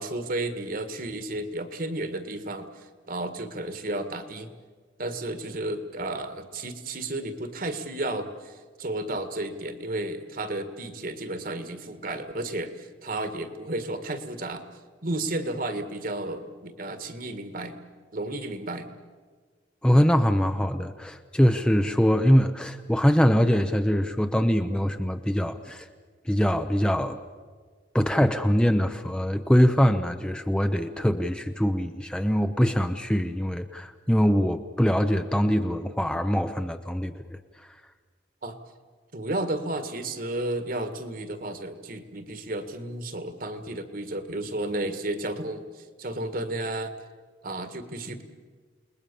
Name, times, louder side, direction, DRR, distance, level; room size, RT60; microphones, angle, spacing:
voice 1, 0.0-4.5 5.0-14.6 15.0-17.7 18.1-18.9 38.4-38.6 39.1-46.9 47.4-48.2, right 2 dB, 50° right, 9 dB, 1.8 m, -32 dB
voice 2, 19.8-25.9 26.3-27.2 27.9-37.2, equal, 5° left, 7 dB, 0.7 m, -23 dB
29.0 x 20.5 x 7.0 m, 1.6 s
head